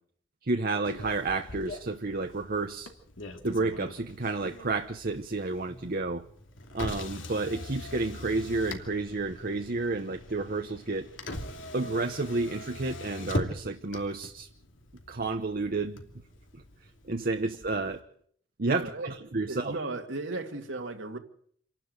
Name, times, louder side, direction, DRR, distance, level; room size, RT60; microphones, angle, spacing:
voice 1, 0.4-2.9 3.4-6.2 6.7-11.1 11.7-14.5 15.1-16.0 17.1-18.0 18.6-19.8, right 3 dB, 50° right, 1.0 m, -31 dB
Motor vehicle (road), 0.8-18.0, left 1 dB, 85° left, 2.7 m, -41 dB
voice 2, 18.7-19.1 19.5-21.2, right 2 dB, 80° right, 2.3 m, -36 dB
27.0 x 12.0 x 8.1 m
head